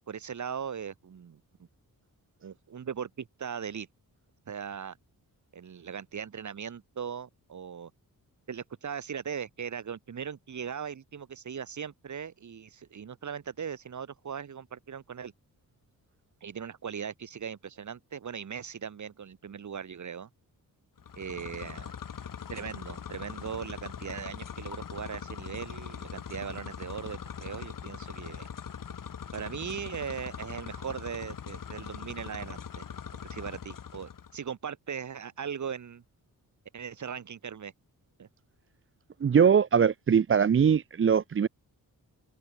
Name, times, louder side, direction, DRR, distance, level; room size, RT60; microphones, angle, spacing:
voice 1, 0.1-1.7 2.4-3.9 4.5-5.0 5.5-7.9 8.5-15.3 16.4-20.3 21.2-21.9 22.5-28.5 29.3-32.9 33.3-36.0 36.7-37.7 38.2-38.3, right 7 dB, 50° right, 2.1 m, -39 dB
sound 1, 21.0-34.4, left 7 dB, 60° left, 4.5 m, -41 dB
voice 2, 39.2-41.5, right 7 dB, 35° right, 0.6 m, -22 dB
wide cardioid pair, 145°, 37 cm